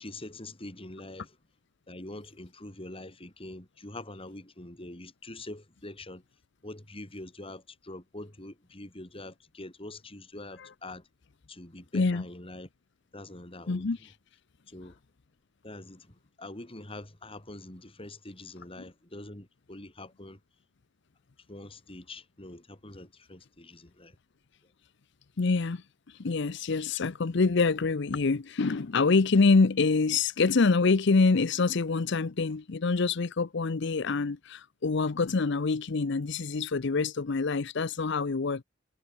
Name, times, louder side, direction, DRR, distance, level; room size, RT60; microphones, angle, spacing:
voice 1, 0.0-1.4 1.9-6.2 6.6-11.1 11.5-12.7 13.1-14.1 14.7-15.0 15.6-20.4 21.5-24.2, left 2 dB, 30° left, 3.7 m, -44 dB
voice 2, 13.7-14.0 25.4-25.8 26.2-38.6, left 4 dB, 65° left, 0.7 m, -26 dB
head